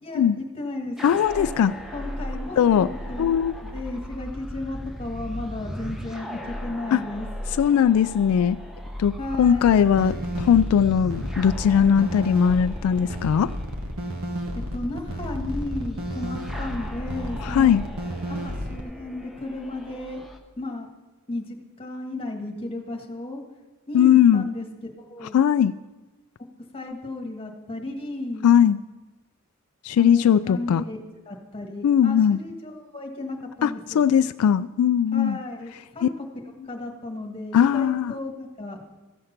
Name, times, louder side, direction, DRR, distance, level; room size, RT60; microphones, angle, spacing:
voice 1, 0.0-1.0 1.4-1.5 1.9-3.2 3.5-7.3 9.2-9.8 14.5-17.8 18.2-20.2 20.6-20.9 21.3-23.4 23.9-25.4 26.7-28.5 30.0-31.0 31.3-34.0 35.1-36.3 36.6-38.8, left 2 dB, 25° left, 1 dB, 1.5 m, -34 dB
voice 2, 1.0-1.7 2.6-2.9 3.2-3.5 6.9-7.0 7.6-8.6 9.0-9.1 9.4-13.5 17.4-17.8 23.9-24.4 25.3-25.7 28.4-28.8 29.8-30.8 31.8-32.4 33.6-35.4 36.0-36.1 37.5-38.1, left 8 dB, 85° left, 15 dB, 0.3 m, -19 dB
sound 1, 1.0-20.4, left 1 dB, ahead, 0.7 m, -37 dB
sound 2, 9.9-18.8, equal, 80° right, 1.3 m, -32 dB
14.5 x 6.6 x 5.7 m, 1.2 s
head